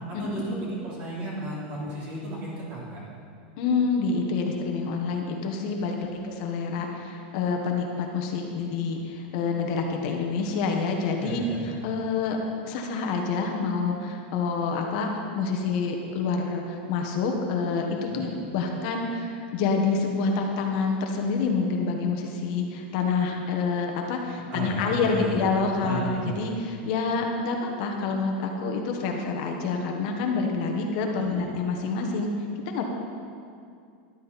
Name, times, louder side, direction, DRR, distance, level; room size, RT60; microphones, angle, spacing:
voice 1, 0.1-3.0 6.0-6.2 11.2-11.6 18.1-18.3 24.5-25.4 25.8-26.3 31.2-31.5, right 2 dB, 30° right, -5 dB, 3.5 m, -34 dB
voice 2, 3.6-12.4 12.6-32.3 32.7-32.8, left 4 dB, 40° left, 2 dB, 1.3 m, -27 dB
13.5 x 12.5 x 4.2 m, 2.4 s
supercardioid pair, 175°, 6 cm